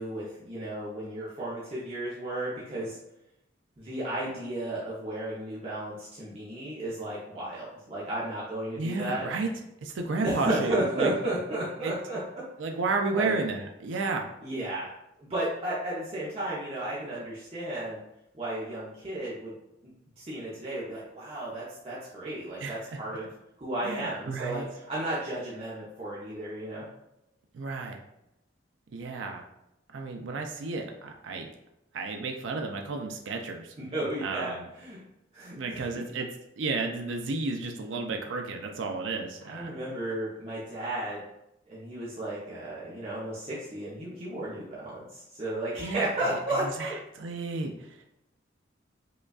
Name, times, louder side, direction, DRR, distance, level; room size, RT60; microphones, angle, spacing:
voice 1, 0.0-3.0 3.8-9.2 10.2-12.4 13.1-13.4 14.4-14.9 15.3-18.0 18.3-19.5 19.8-19.9 20.2-23.3 23.6-26.8 33.8-35.0 35.3-35.8 39.4-41.2 41.7-46.9, right 1 dB, 30° right, -7 dB, 0.7 m, -33 dB
voice 2, 8.8-9.5 9.8-11.1 11.8-11.9 12.6-14.3 22.6-23.0 23.8-24.6 27.5-28.0 28.9-29.4 29.9-31.5 31.9-33.7 34.2-34.7 35.5-36.3 36.6-39.8 45.8-48.1, right 3 dB, 80° right, 3 dB, 0.4 m, -32 dB
5.0 x 2.3 x 2.3 m, 0.85 s
head